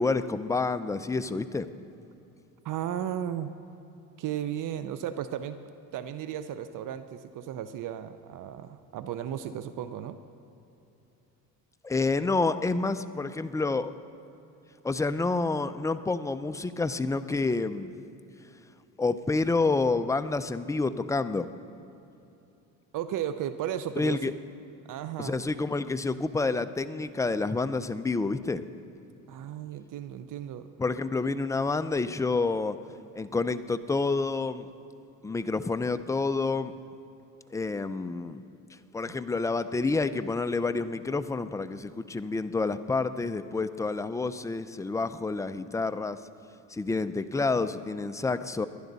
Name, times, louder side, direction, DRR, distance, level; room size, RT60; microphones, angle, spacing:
voice 1, 0.0-1.7 11.8-13.9 14.8-17.9 19.0-21.5 24.0-24.3 25.2-28.6 30.8-32.8 33.2-34.7 35.2-36.7 37.5-38.4 38.9-46.2 46.7-48.7, left 3 dB, 10° left, 11 dB, 0.4 m, -28 dB
voice 2, 2.6-3.5 4.2-5.6 5.9-10.2 22.9-24.3 24.9-25.4 29.3-30.7 39.1-39.2, right 10 dB, 55° right, 11 dB, 0.7 m, -35 dB
20.5 x 11.5 x 4.0 m, 2.8 s
supercardioid pair, 90°, 37 cm